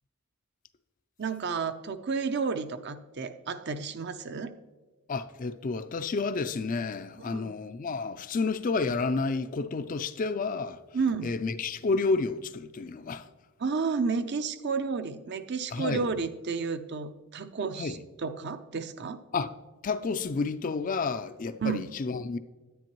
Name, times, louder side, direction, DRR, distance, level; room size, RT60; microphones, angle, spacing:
voice 1, 1.2-4.5 7.2-7.5 10.9-11.3 13.6-19.2 21.6-21.8, right 5 dB, 50° right, 0.5 m, -31 dB
voice 2, 5.1-10.8 11.2-13.3 15.7-16.0 17.8-18.0 19.3-19.5 19.8-22.4, left 4 dB, 35° left, 0.4 m, -30 dB
10.5 x 9.4 x 3.0 m
head